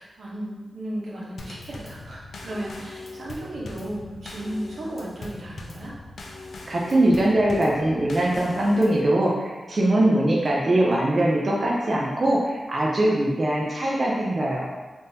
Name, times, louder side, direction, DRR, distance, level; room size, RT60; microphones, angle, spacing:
voice 1, 0.0-6.0, right 1 dB, 75° right, -5 dB, 0.8 m, -35 dB
Drum kit / Snare drum / Bass drum, 1.4-9.1, left 2 dB, 75° left, 0.4 m, -41 dB
voice 2, 6.7-14.7, right 1 dB, 40° right, -4 dB, 0.4 m, -22 dB
3.6 x 2.6 x 2.7 m, 1.3 s
wide cardioid pair, 130°, 0 cm